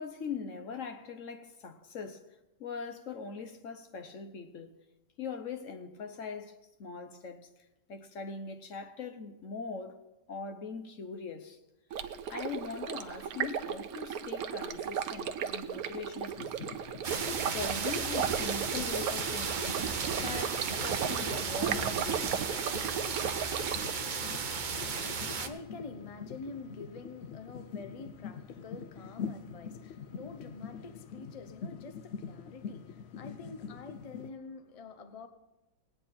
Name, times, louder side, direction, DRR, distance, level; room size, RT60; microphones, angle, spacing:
voice 1, 0.0-2.3 2.6-4.7 5.2-7.5 7.9-10.0 10.3-11.6 12.3-16.7 17.3-19.8 20.2-22.4, left 5 dB, 55° left, 1.1 m, -41 dB
Stream, 11.9-23.9, right 8 dB, 65° right, 1.1 m, -35 dB
sound 1, 16.4-34.3, left 6 dB, 85° left, 0.5 m, -45 dB
sound 2, 17.0-25.5, right 5 dB, 45° right, 0.6 m, -35 dB
voice 2, 24.6-35.3, left 3 dB, 35° left, 0.6 m, -47 dB
18.5 x 9.2 x 4.3 m
omnidirectional pair, 1.8 m